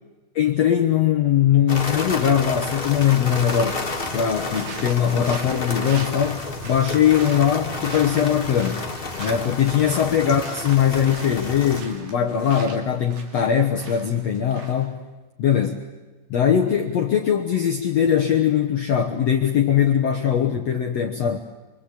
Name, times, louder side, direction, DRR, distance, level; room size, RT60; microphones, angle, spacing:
voice 1, 0.3-3.8 4.1-8.8 9.2-15.0 15.4-15.8 16.3-21.4, left 9 dB, 70° left, 2 dB, 1.5 m, -21 dB
sound 1, 1.7-11.8, left 3 dB, 55° left, 0.6 m, -31 dB
sound 2, 4.4-15.0, right 4 dB, 55° right, 4.0 m, -42 dB
25.0 x 24.5 x 8.5 m, 1.2 s
omnidirectional pair, 4.8 m